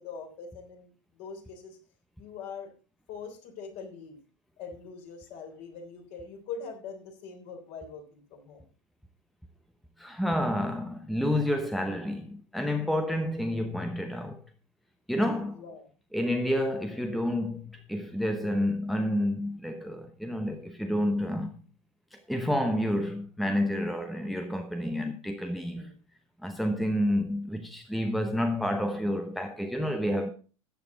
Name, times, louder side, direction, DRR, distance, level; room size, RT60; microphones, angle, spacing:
voice 1, 0.0-1.8 2.2-2.7 3.1-4.2 4.6-8.7 13.3-13.4 15.5-15.9 25.6-26.0, left 5 dB, 40° left, 3.4 m, -43 dB
voice 2, 10.0-14.4 15.1-15.6 16.1-21.5 22.1-25.9 26.4-30.3, left 1 dB, ahead, 0.9 m, -29 dB
13.5 x 8.7 x 3.8 m
figure-of-eight pair, 90°, 17 cm